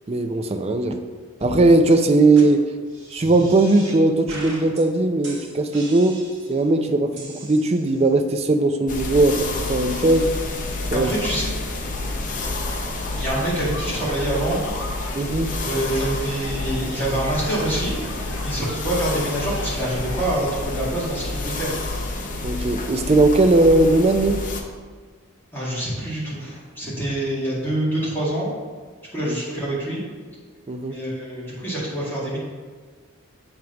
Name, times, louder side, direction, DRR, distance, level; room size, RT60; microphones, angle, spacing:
voice 1, 0.1-1.0 1.4-2.6 3.1-6.2 6.5-10.3 10.9-11.1 15.1-15.5 22.4-24.4 29.2-29.3 30.7-31.0, right 2 dB, 30° right, 7 dB, 0.4 m, -18 dB
sound 1, 1.4-1.6 1.9-2.0 2.4-2.5 2.9-4.0 4.3-4.8 5.2-6.6 7.2-8.1, right 2 dB, 60° right, 1.8 m, -39 dB
sound 2, 8.9-24.6, left 2 dB, 35° left, 0.6 m, -29 dB
voice 2, 10.9-11.5 13.2-14.6 15.0-15.3 15.6-18.0 18.4-21.7 25.5-28.5 29.1-30.0 30.9-32.4, right 1 dB, 10° left, -8 dB, 2.0 m, -26 dB
sound 3, 11.9-20.4, left 2 dB, 65° left, 1.4 m, -39 dB
7.7 x 3.6 x 5.7 m, 1.5 s
head